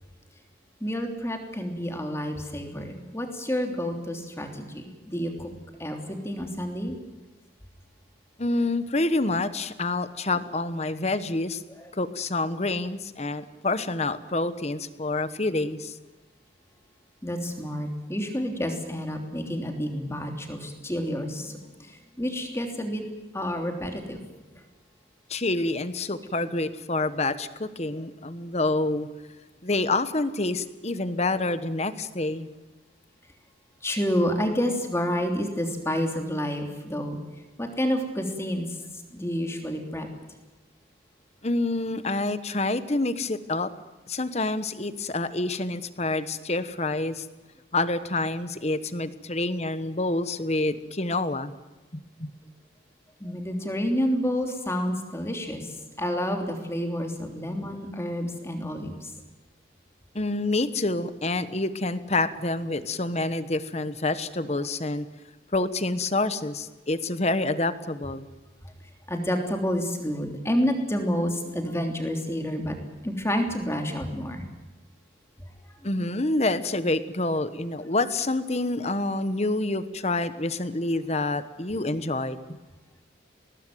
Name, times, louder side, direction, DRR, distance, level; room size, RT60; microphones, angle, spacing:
voice 1, 0.8-5.5 5.8-7.0 17.2-21.9 22.2-23.0 23.3-24.2 33.8-37.2 37.6-38.7 39.1-40.1 53.2-55.7 56.0-59.1 69.1-72.8 73.0-74.4, equal, 15° left, 3 dB, 3.2 m, -29 dB
voice 2, 8.4-11.6 11.9-16.0 25.3-29.1 29.6-32.5 41.4-43.7 44.1-47.3 47.7-51.5 51.9-52.3 60.1-65.1 65.5-68.3 75.8-82.6, left 2 dB, 35° left, 13 dB, 1.2 m, -27 dB
21.0 x 19.0 x 9.3 m, 1.2 s
head